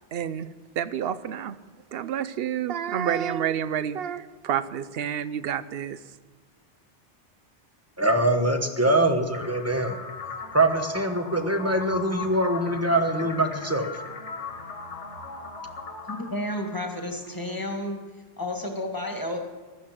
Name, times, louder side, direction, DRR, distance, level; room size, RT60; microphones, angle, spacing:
voice 1, 0.1-0.5 0.8-1.6 1.9-6.0, right 9 dB, 65° right, 0.8 m, -29 dB
voice 2, 8.0-10.0 10.5-13.9, right 1 dB, 15° right, 1.2 m, -23 dB
sound 1, 9.3-17.3, left 4 dB, 85° left, 1.8 m, -39 dB
voice 3, 16.0-18.0 18.4-19.4, left 1 dB, 20° left, 1.9 m, -31 dB
15.5 x 12.0 x 6.0 m
omnidirectional pair, 1.2 m